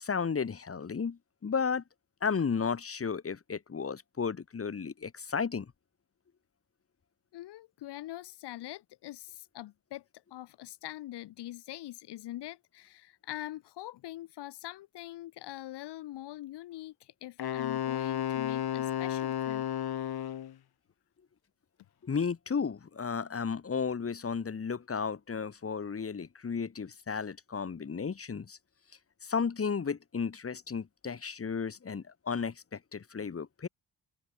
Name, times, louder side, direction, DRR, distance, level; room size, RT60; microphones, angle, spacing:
voice 1, 0.0-1.8 2.2-5.7 22.0-28.6 29.2-33.7, left 5 dB, 35° left, 2.0 m, -33 dB
voice 2, 7.3-10.0 10.3-19.7, left 15 dB, 85° left, 8.0 m, -43 dB
Wind instrument woodwind instrument, 17.4-20.5, left 10 dB, 65° left, 3.6 m, -32 dB
open air
supercardioid pair, 60°, 40 cm